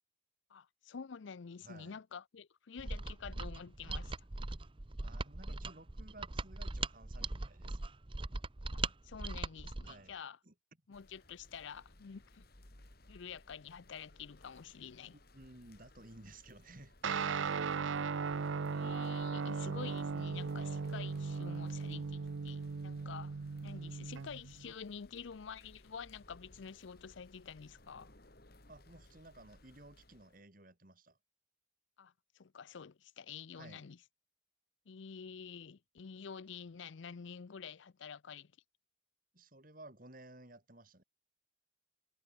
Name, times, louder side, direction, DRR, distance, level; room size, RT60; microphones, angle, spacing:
voice 1, 0.5-4.1 8.7-10.4 10.9-12.4 13.1-15.1 18.7-23.4 23.6-28.1 32.0-34.0 34.9-38.5, left 6 dB, 70° left, 0.5 m, -48 dB
voice 2, 1.6-2.0 5.0-7.9 9.8-10.1 10.4-10.5 15.1-16.9 28.7-31.2 33.5-33.8 39.3-41.0, right 2 dB, 45° right, 3.1 m, -56 dB
Mechanisms, 2.8-10.0, right 3 dB, 25° right, 0.8 m, -40 dB
sound 1, 10.9-30.4, left 1 dB, 50° left, 3.0 m, -62 dB
Guitar, 17.0-24.7, right 5 dB, 75° right, 0.6 m, -37 dB
head